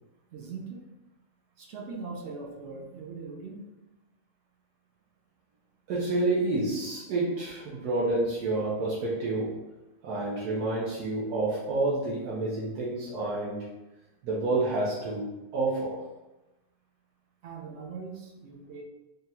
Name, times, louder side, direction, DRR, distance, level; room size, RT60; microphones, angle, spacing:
voice 1, 0.3-0.8 1.6-3.7 17.4-18.8, right 4 dB, 60° right, 1 dB, 0.7 m, -40 dB
voice 2, 5.9-9.6 10.0-13.6 14.2-16.1, right 2 dB, 85° right, -7 dB, 1.3 m, -29 dB
3.8 x 2.2 x 4.2 m, 1.0 s
omnidirectional pair, 1.7 m